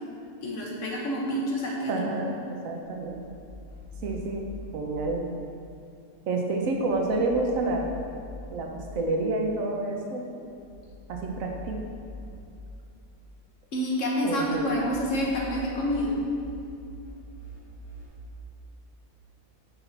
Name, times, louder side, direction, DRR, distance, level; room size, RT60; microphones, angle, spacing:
voice 1, 0.4-1.9 13.7-16.1, equal, 60° left, -2 dB, 1.3 m, -28 dB
voice 2, 1.9-3.2 4.0-4.5 4.7-5.2 6.3-7.9 8.5-10.3 11.1-11.8 14.2-14.8, right 2 dB, 70° right, 1 dB, 1.1 m, -29 dB
sound 1, 2.8-4.7 6.6-8.5 10.4-12.4 14.2-18.1, left 2 dB, 85° left, 2.3 m, -44 dB
5.8 x 5.7 x 4.0 m, 2.6 s
omnidirectional pair, 1.5 m